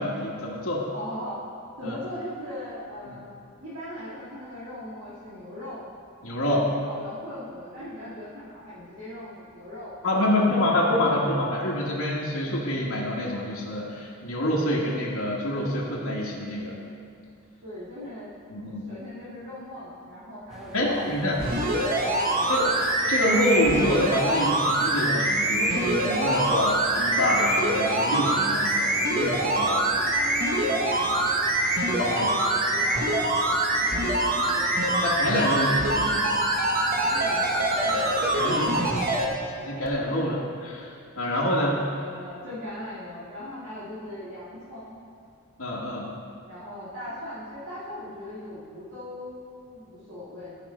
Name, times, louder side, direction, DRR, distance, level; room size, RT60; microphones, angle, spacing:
voice 1, 0.0-0.8 1.8-1.9 3.0-3.1 6.2-6.6 10.0-16.7 18.5-18.9 20.7-21.3 22.5-22.7 23.1-29.8 32.0-32.3 35.0-36.4 38.3-41.7 45.6-46.1, left 1 dB, 75° left, -6 dB, 1.3 m, -27 dB
voice 2, 0.9-1.4 1.8-5.8 6.4-10.6 11.0-11.2 17.6-18.3 18.9-22.7 29.9-31.6 32.2-35.1 37.0-38.3 40.3-40.4 41.5-45.0 46.5-50.6, left 1 dB, 80° right, -10 dB, 1.9 m, -39 dB
sound 1, 20.5-38.4, equal, 5° right, 0.7 m, -43 dB
sound 2, 21.4-39.3 39.8-39.9, right 1 dB, 45° right, 1.0 m, -24 dB
13.5 x 5.4 x 4.2 m, 2.4 s
head